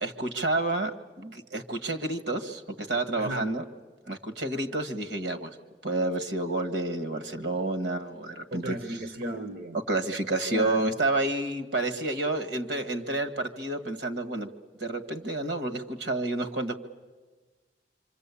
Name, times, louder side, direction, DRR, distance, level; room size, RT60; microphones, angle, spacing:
voice 1, 0.0-3.6 4.1-5.6 5.8-9.0 9.9-14.5 14.8-16.7, right 2 dB, 75° right, 7 dB, 1.7 m, -30 dB
voice 2, 3.2-3.5 8.5-9.8 10.5-10.8, right 1 dB, 55° right, 8 dB, 0.9 m, -35 dB
26.0 x 26.0 x 8.4 m, 1.3 s
head